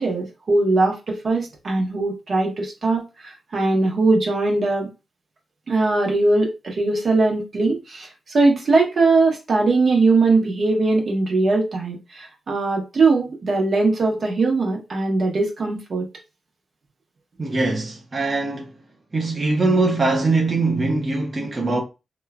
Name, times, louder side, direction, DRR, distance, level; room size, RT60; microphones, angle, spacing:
voice 1, 0.0-4.9 5.7-16.1, right 3 dB, 60° right, 1.0 m, -20 dB
voice 2, 17.4-18.7 19.1-21.8, right 3 dB, 40° right, 0.7 m, -22 dB
3.0 x 2.3 x 2.2 m
cardioid pair, 60°, 0 cm